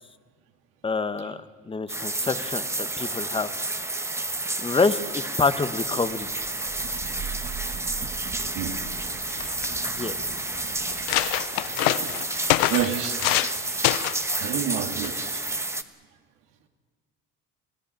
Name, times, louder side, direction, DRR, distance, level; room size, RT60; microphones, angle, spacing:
voice 1, 0.8-3.5 4.6-6.3 9.8-10.2, left 4 dB, 15° left, 12 dB, 1.1 m, -27 dB
sound 1, 1.9-15.8, right 2 dB, 10° right, 1.1 m, -30 dB
Thunder / Rain, 6.0-11.6, right 8 dB, 25° right, 0.6 m, -41 dB
sound 2, 9.0-9.1 9.3-9.9 10.5-10.6 10.9-13.6 13.8-14.3 15.0-15.3, left 18 dB, 80° left, 0.7 m, -25 dB
voice 2, 9.4-9.8 10.8-14.1 14.4-15.4, right 10 dB, 80° right, 4 dB, 2.3 m, -33 dB
25.0 x 15.5 x 9.0 m, 1.5 s
supercardioid pair, 100°, 30 cm